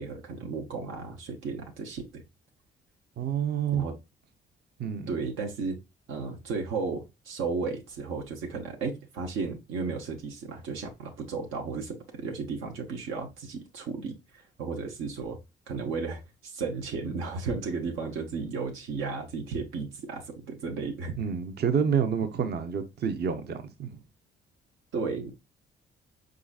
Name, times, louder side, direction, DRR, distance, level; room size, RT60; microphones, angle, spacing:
voice 1, 0.0-2.2 3.7-3.9 5.1-5.8 6.1-15.4 15.7-21.2 24.9-25.3, right 4 dB, 90° right, 0.9 m, -34 dB
voice 2, 3.2-3.8 4.8-5.1 21.2-24.0, right 7 dB, 55° right, 0.7 m, -28 dB
4.8 x 3.8 x 2.3 m
cardioid pair, 90°, 20 cm